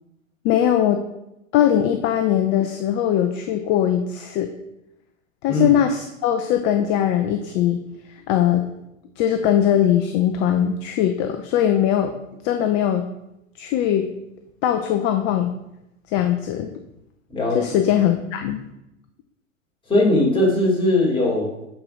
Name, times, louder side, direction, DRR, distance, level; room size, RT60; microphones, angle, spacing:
voice 1, 0.4-1.1 1.5-4.6 5.4-7.8 8.1-8.7 9.2-12.1 12.4-13.1 13.6-14.1 14.6-15.5 16.1-16.7 17.5-18.6, left 10 dB, 30° left, 7 dB, 0.6 m, -20 dB
voice 2, 17.3-17.6 19.9-21.5, left 1 dB, 15° left, -4 dB, 3.4 m, -19 dB
10.5 x 4.6 x 5.2 m, 0.87 s
hypercardioid pair, 110°, 40 cm